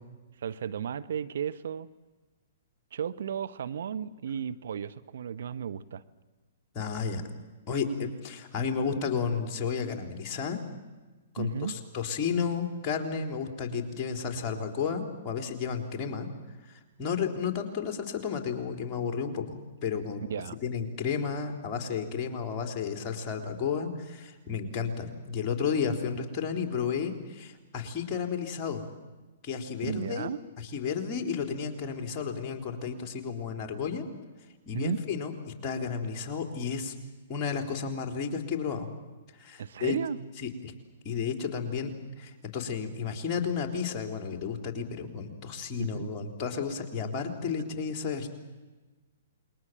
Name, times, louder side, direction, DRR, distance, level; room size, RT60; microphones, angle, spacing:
voice 1, 0.4-1.9 2.9-6.0 11.4-11.7 20.3-20.6 29.8-30.4 34.7-35.0 39.6-40.2 45.8-46.1, right 8 dB, 65° right, 12 dB, 1.0 m, -34 dB
voice 2, 6.7-7.2 7.7-10.6 11.3-16.3 16.7-20.2 20.6-28.8 29.4-34.1 34.7-35.3 35.6-36.9 37.3-38.9 39.3-40.0 40.4-40.7 41.0-41.9 42.2-48.3, left 6 dB, 30° left, 5 dB, 3.9 m, -32 dB
28.5 x 21.5 x 7.6 m, 1.3 s
figure-of-eight pair, 120°, 0 cm